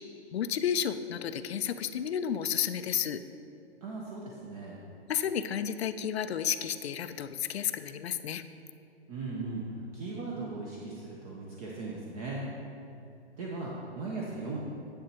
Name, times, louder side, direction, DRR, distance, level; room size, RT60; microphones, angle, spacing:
voice 1, 0.3-3.2 5.1-8.4, left 8 dB, 70° left, 12 dB, 0.5 m, -31 dB
voice 2, 3.8-4.8 9.1-9.7 9.9-12.5 13.4-14.6, right 3 dB, 35° right, -3 dB, 1.0 m, -38 dB
10.0 x 7.9 x 2.9 m, 2.7 s
hypercardioid pair, 145°, 33 cm